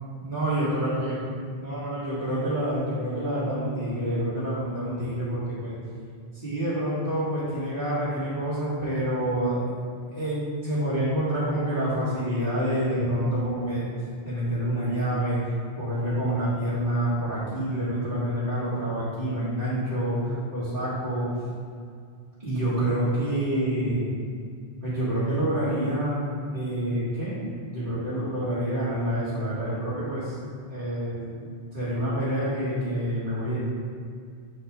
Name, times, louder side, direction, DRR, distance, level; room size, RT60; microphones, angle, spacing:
voice 1, 0.2-1.2 1.6-5.8 6.3-9.6 10.1-13.9 14.2-15.4 15.8-21.3 22.4-24.1 24.8-26.2 26.5-30.4 30.7-31.5 31.7-33.6, right 1 dB, 45° right, -14 dB, 1.8 m, -27 dB
7.3 x 4.2 x 3.5 m, 2.2 s
omnidirectional pair, 1.1 m